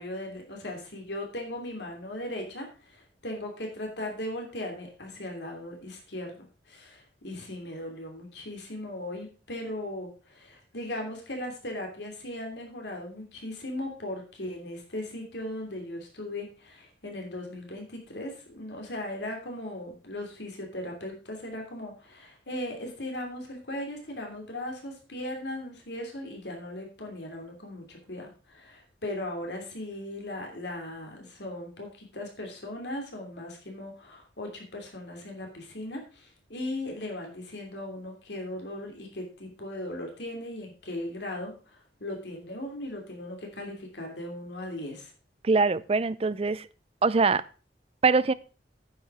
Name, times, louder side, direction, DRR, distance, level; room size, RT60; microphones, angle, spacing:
voice 1, 0.0-45.1, left 1 dB, 75° left, 2 dB, 2.9 m, -38 dB
voice 2, 45.4-46.7 47.0-47.4 48.0-48.3, right 4 dB, 35° right, 16 dB, 0.5 m, -23 dB
9.3 x 7.7 x 4.8 m, 0.35 s
head